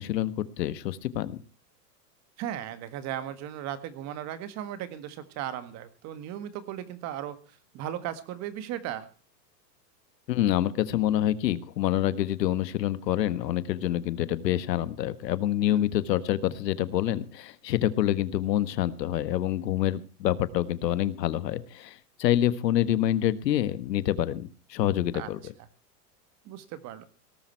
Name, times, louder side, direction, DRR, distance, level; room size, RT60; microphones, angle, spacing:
voice 1, 0.0-1.3 10.3-25.5, left 12 dB, 85° left, 15 dB, 1.4 m, -27 dB
voice 2, 2.4-9.1 15.7-15.8 25.1-25.3 26.5-27.0, right 11 dB, 35° right, 12 dB, 1.8 m, -36 dB
18.0 x 12.5 x 4.6 m, 0.36 s
supercardioid pair, 150°, 48 cm